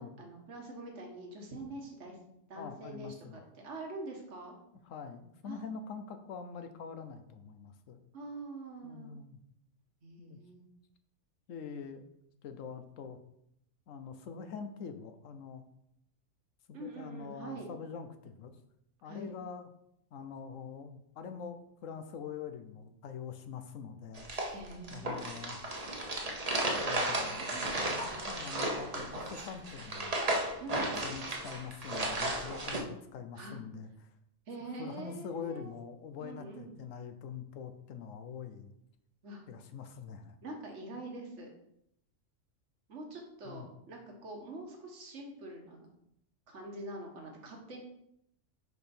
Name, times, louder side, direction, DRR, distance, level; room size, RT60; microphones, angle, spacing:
voice 1, 0.0-2.2 2.5-4.5 5.4-5.6 8.1-9.1 10.0-10.6 16.7-17.7 19.0-19.3 24.5-25.2 26.8-27.9 30.6-31.0 33.3-33.6 34.5-35.7 36.2-36.7 39.2-39.4 40.4-41.5 42.9-45.9 46.5-47.8, right 2 dB, 65° right, 1 dB, 1.7 m, -45 dB
voice 2, 2.5-3.5 4.8-8.0 8.8-9.4 10.2-10.4 11.5-12.1 12.4-13.2 13.9-15.6 16.7-18.6 19.0-19.7 20.1-24.5 24.9-25.6 26.7-27.7 28.0-30.2 31.0-34.1 34.8-38.7 39.5-40.4 43.4-43.7, left 6 dB, 80° left, 8 dB, 1.1 m, -44 dB
sound 1, 24.2-32.8, right 1 dB, 35° right, 1.0 m, -34 dB
6.4 x 5.2 x 4.4 m, 0.76 s
omnidirectional pair, 1.3 m